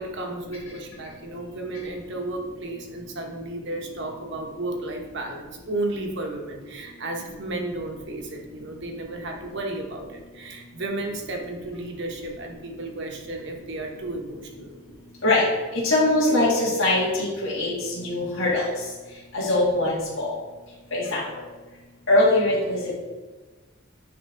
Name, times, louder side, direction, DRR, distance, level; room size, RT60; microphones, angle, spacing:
voice 1, 0.0-14.8 19.7-19.8, right 2 dB, 60° right, 2 dB, 1.0 m, -33 dB
voice 2, 15.7-18.6 19.3-20.3 20.9-21.2 22.1-23.0, left 2 dB, 65° left, -8 dB, 1.9 m, -22 dB
9.6 x 3.3 x 3.8 m, 1.3 s
head